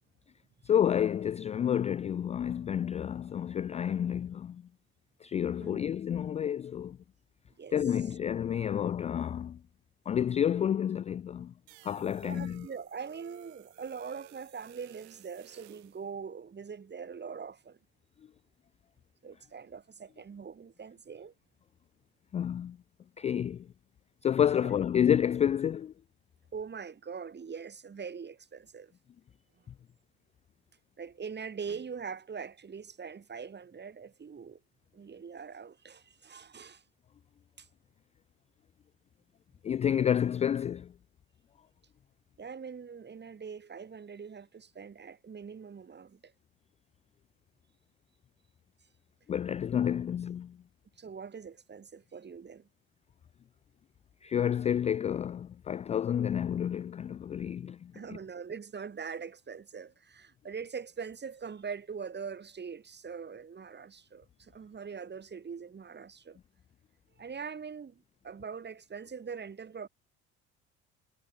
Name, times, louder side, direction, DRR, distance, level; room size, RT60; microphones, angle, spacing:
voice 1, 0.6-4.6 5.2-7.0 7.7-9.6 10.1-11.5 11.8-12.7 22.3-22.8 23.2-23.7 24.2-25.9 39.6-40.9 49.3-50.6 54.2-58.2, left 9 dB, 20° left, 0.3 m, -29 dB
sound 1, 11.7-16.0, right 38 dB, 70° right, 6.5 m, -56 dB
voice 2, 12.2-17.8 19.2-21.3 24.6-24.7 26.5-28.9 31.0-34.6 34.9-36.8 37.6-37.7 42.4-46.3 51.0-52.7 57.9-66.4 67.2-69.9, right 6 dB, 30° right, 5.1 m, -42 dB
figure-of-eight pair, 60°, 33 cm